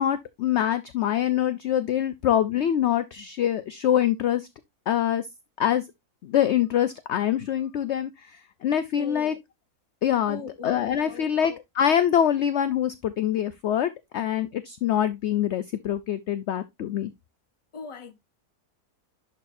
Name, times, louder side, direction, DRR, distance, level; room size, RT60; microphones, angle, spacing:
voice 1, 0.0-4.5 4.9-5.3 5.6-5.8 6.2-8.3 8.6-9.3 10.0-17.1, left 10 dB, 65° left, 0.7 m, -24 dB
voice 2, 8.9-9.4 10.3-11.4 17.7-18.1, left 4 dB, 25° left, 0.8 m, -40 dB
11.0 x 4.1 x 2.5 m
omnidirectional pair, 1.6 m